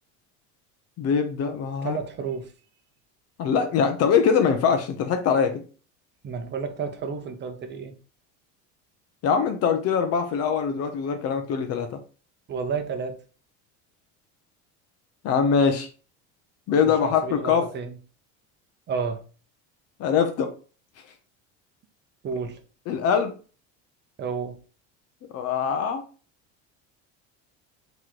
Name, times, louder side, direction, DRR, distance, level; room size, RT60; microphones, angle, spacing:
voice 1, 1.0-2.0 3.4-5.6 9.2-12.0 15.2-15.9 16.7-17.7 20.0-20.5 22.9-23.3 25.3-26.0, left 6 dB, 45° left, 0.6 m, -23 dB
voice 2, 1.8-2.5 6.2-7.9 12.5-13.2 16.8-17.9 18.9-19.2 22.2-22.6 24.2-24.6, right 5 dB, 30° right, 0.8 m, -31 dB
3.7 x 3.1 x 4.5 m
cardioid pair, 135°, 34 cm